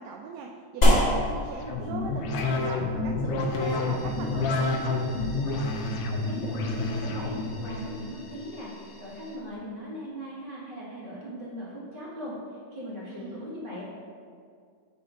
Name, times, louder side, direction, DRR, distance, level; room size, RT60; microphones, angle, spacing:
voice 1, 0.0-5.1 13.1-13.4, right 5 dB, 80° right, 1 dB, 1.7 m, -40 dB
sound 1, 0.8-9.5, equal, 30° left, 1.3 m, -30 dB
sound 2, 1.6-7.9, left 3 dB, 75° left, 2.0 m, -29 dB
sound 3, 3.6-9.4, left 1 dB, 50° left, 0.8 m, -51 dB
voice 2, 6.3-12.3 12.7-13.8, equal, 25° right, -8 dB, 1.3 m, -39 dB
8.4 x 4.1 x 5.1 m, 2.1 s
omnidirectional pair, 3.4 m